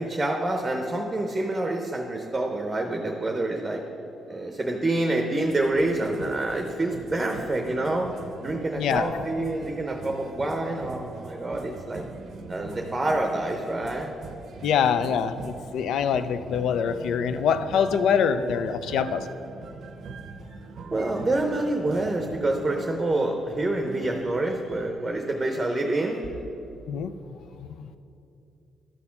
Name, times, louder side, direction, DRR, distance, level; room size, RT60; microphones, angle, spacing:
voice 1, 0.0-3.8 4.3-8.1 8.4-12.0 12.5-14.1 20.9-26.4, right 2 dB, 20° right, 2 dB, 0.7 m, -27 dB
sound 1, 5.4-24.9, right 4 dB, 60° right, 0.6 m, -42 dB
voice 2, 8.8-9.1 14.6-19.3 26.9-27.1 27.6-27.9, left 7 dB, 75° left, 12 dB, 0.4 m, -24 dB
12.5 x 4.1 x 5.8 m, 2.8 s
cardioid pair, 90°, 0 cm